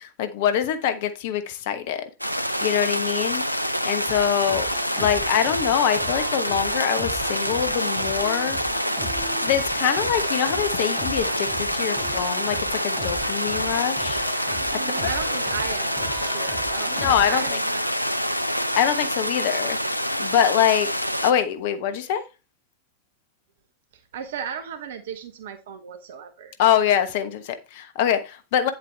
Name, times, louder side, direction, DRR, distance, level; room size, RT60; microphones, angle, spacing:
voice 1, 0.0-2.1 2.6-3.4 3.8-4.7 4.9-8.6 9.4-15.1 16.9-17.4 18.5-19.8 20.2-21.0 21.2-22.2 26.6-28.7, left 9 dB, 50° left, 1.2 m, -24 dB
sound 1, 2.2-21.3, equal, 90° left, 0.5 m, -26 dB
sound 2, 4.1-17.5, equal, 15° right, 4.1 m, -37 dB
voice 2, 14.7-18.1 23.9-26.5, right 7 dB, 55° right, 1.2 m, -36 dB
9.5 x 7.9 x 3.4 m
figure-of-eight pair, 90°, 0 cm